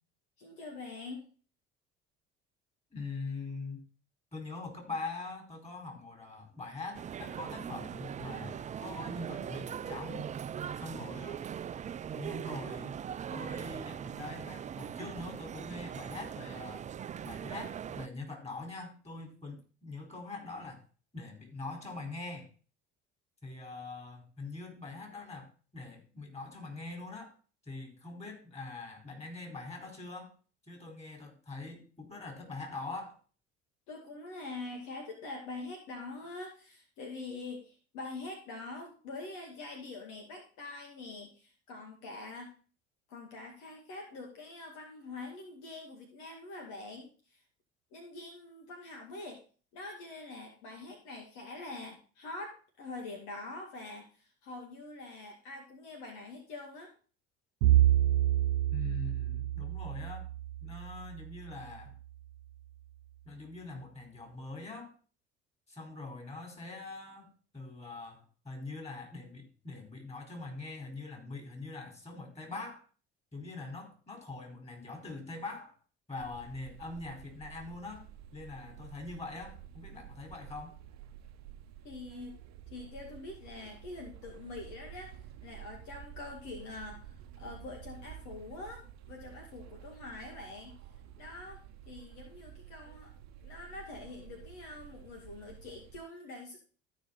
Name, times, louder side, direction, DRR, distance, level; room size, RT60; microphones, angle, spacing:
voice 1, 0.4-1.3 33.9-42.6 43.1-47.4 47.9-49.4 49.7-56.9 81.8-82.4 82.7-85.1 85.4-90.8 91.2-93.1 93.4-96.6, left 3 dB, 65° left, 1 dB, 2.2 m, -45 dB
voice 2, 2.9-3.8 4.3-10.3 10.7-11.4 12.1-13.0 13.3-16.9 17.2-20.8 21.1-22.5 23.4-27.3 27.7-30.3 30.7-33.2 58.7-60.3 60.6-61.9 63.3-64.9 65.7-72.8 73.3-75.7 76.1-80.8, left 3 dB, 20° left, 2 dB, 4.5 m, -43 dB
sound 1, 6.9-18.1, right 8 dB, 25° right, 0.4 m, -40 dB
Bowed string instrument, 57.6-61.8, right 13 dB, 80° right, 0.5 m, -28 dB
sound 2, 76.2-96.0, right 11 dB, 55° right, 1.1 m, -51 dB
13.5 x 5.2 x 4.1 m, 0.38 s
hypercardioid pair, 65°, 32 cm